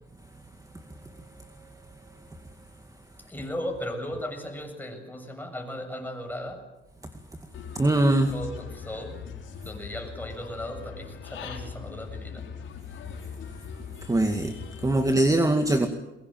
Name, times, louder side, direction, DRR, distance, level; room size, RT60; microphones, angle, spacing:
voice 1, 3.2-6.7 8.2-9.3 9.6-12.5, equal, 10° left, 7.5 m, -36 dB
Human voice / Bird, 7.5-15.2, left 7 dB, 75° left, 5.0 m, -41 dB
voice 2, 7.8-8.3 14.0-14.5 14.8-15.9, right 1 dB, 15° right, 2.2 m, -22 dB
23.0 x 21.5 x 9.2 m
cardioid pair, 90°, 20 cm